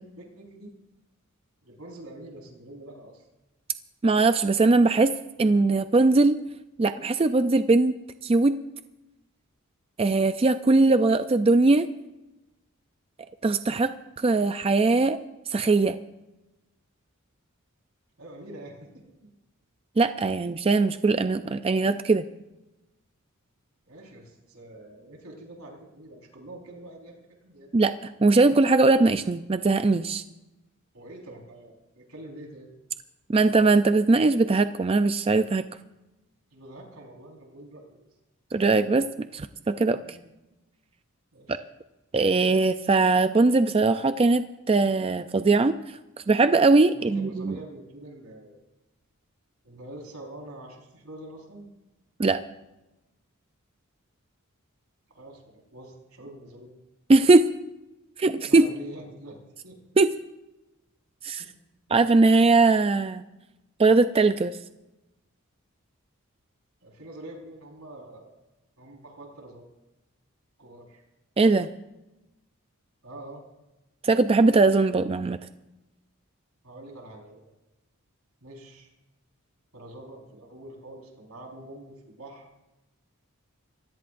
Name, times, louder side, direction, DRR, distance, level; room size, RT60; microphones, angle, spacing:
voice 1, 0.2-0.7 1.6-3.3 18.2-18.9 23.9-27.7 30.9-32.7 36.5-38.1 40.0-40.2 41.3-41.7 46.9-48.6 49.6-51.7 55.1-56.7 58.3-59.4 59.6-59.8 61.4-61.5 66.8-68.3 68.8-69.7 70.6-71.0 73.0-73.4 76.6-77.4 78.4-78.9 79.7-82.5, right 1 dB, 85° right, 0 dB, 4.6 m, -45 dB
voice 2, 4.0-5.1 5.4-6.4 6.8-8.5 10.0-11.9 13.4-13.9 14.2-15.2 15.5-16.0 20.0-22.2 27.7-30.2 33.3-35.6 38.5-40.2 41.5-41.6 42.1-45.8 46.3-47.6 52.2-52.4 57.1-57.5 58.2-58.7 60.0-60.1 61.2-61.4 61.9-63.2 63.8-64.6 71.4-71.7 74.0-75.4, right 3 dB, 25° right, 10 dB, 0.4 m, -20 dB
25.5 x 16.5 x 2.6 m, 0.99 s
head